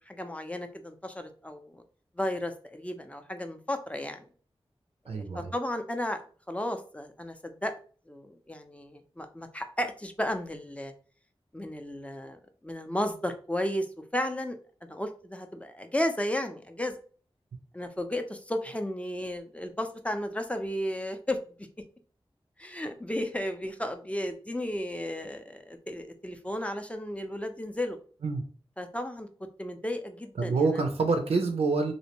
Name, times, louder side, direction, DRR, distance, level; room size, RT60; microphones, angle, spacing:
voice 1, 0.1-1.8 2.2-4.3 5.1-6.2 6.5-7.7 8.1-10.9 11.5-12.4 12.6-13.9 14.1-14.6 14.9-16.9 17.7-21.4 22.6-28.0 28.8-29.3 29.6-30.6, left 1 dB, 15° left, 6 dB, 0.4 m, -33 dB
voice 2, 5.1-5.5 28.2-28.4 30.4-31.9, right 4 dB, 90° right, 4 dB, 0.4 m, -27 dB
2.6 x 2.1 x 2.8 m, 0.41 s
wide cardioid pair, 50°, 10 cm